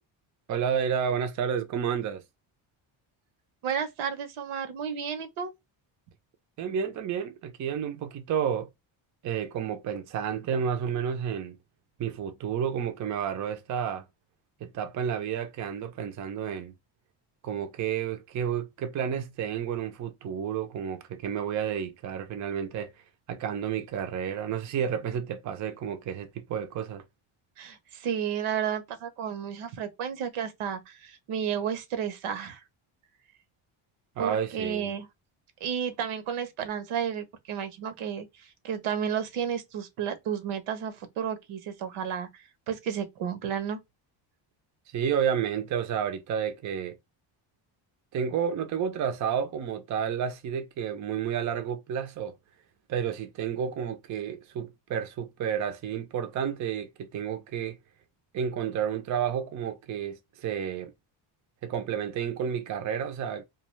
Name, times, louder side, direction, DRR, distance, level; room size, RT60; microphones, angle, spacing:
voice 1, 0.5-2.2 6.6-8.7 9.2-11.6 12.0-14.0 14.6-16.7 17.4-22.9 23.3-27.0 34.2-34.9 44.9-47.0 48.1-52.3 52.9-57.8 58.3-60.9 61.6-63.4, right 8 dB, 40° right, 0.4 m, -31 dB
voice 2, 3.6-5.5 27.6-32.6 34.2-35.1 35.6-43.8, right 8 dB, 80° right, 0.8 m, -32 dB
2.3 x 2.2 x 2.9 m
cardioid pair, 130°, 49 cm